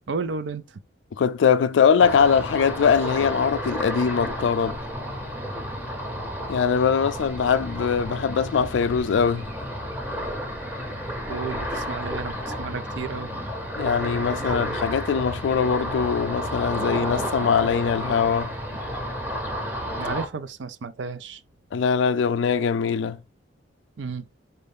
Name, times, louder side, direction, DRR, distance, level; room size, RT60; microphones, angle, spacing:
voice 1, 0.1-0.8 11.3-13.3 20.0-21.4 24.0-24.2, right 4 dB, 65° right, 0.4 m, -32 dB
voice 2, 1.1-4.8 6.5-9.5 13.8-18.5 21.7-23.2, left 6 dB, 70° left, 0.3 m, -22 dB
Ocean, 2.0-20.3, equal, 10° right, 0.8 m, -31 dB
4.3 x 2.6 x 3.4 m
head